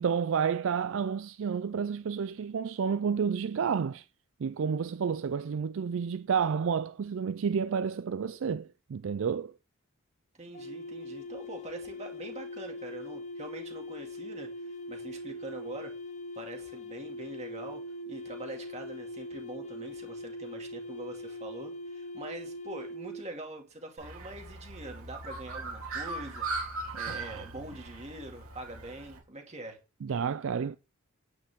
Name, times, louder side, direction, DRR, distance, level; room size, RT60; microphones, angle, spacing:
voice 1, 0.0-4.0 4.4-9.5 27.1-27.5 30.0-30.8, right 6 dB, 60° right, 0.4 m, -30 dB
voice 2, 10.3-16.0 16.4-26.5 26.9-29.8, right 2 dB, 30° right, 2.3 m, -44 dB
sound 1, 10.5-23.3, left 1 dB, 35° left, 0.9 m, -41 dB
Bird, 24.0-29.2, right 3 dB, 85° right, 3.3 m, -39 dB
9.8 x 9.0 x 3.6 m
head